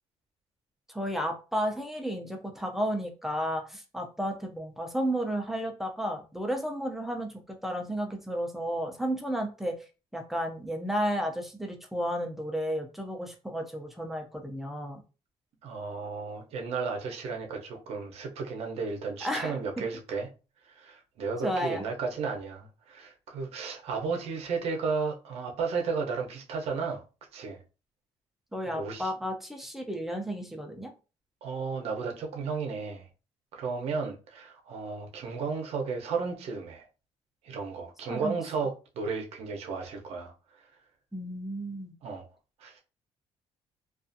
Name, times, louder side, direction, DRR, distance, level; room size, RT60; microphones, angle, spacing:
voice 1, 0.9-9.8 10.1-15.0 19.2-19.6 21.4-21.8 28.5-30.9 38.0-38.4 41.1-41.9, equal, ahead, 0.4 m, -32 dB
voice 2, 15.6-20.3 20.6-27.0 27.3-27.6 28.7-29.1 31.4-33.1 33.5-36.9 37.4-40.3 42.0-42.3 42.6-42.8, right 4 dB, 65° right, 0.7 m, -33 dB
2.4 x 2.4 x 2.5 m
cardioid pair, 140°, 11 cm